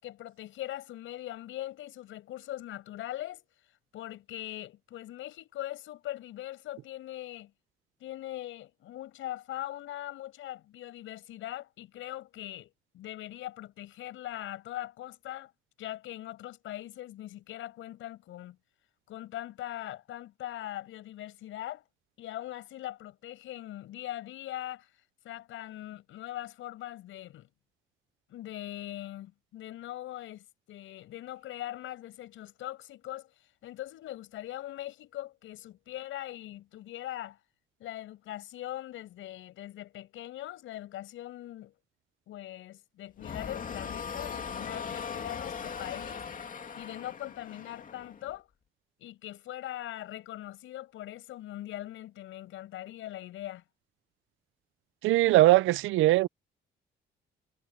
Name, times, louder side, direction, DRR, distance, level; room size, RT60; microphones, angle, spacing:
voice 1, 0.0-3.5 3.9-7.5 8.0-15.5 15.8-18.6 19.1-21.8 22.2-24.9 25.2-27.5 28.3-33.3 33.6-37.4 37.8-41.7 42.3-46.3 46.8-48.5 49.0-53.6, left 14 dB, 85° left, 6.6 m, -41 dB
sound 1, 43.2-48.4, left 6 dB, 45° left, 2.6 m, -39 dB
voice 2, 55.0-56.3, right 17 dB, 90° right, 0.6 m, -21 dB
cardioid pair, 90°, 20 cm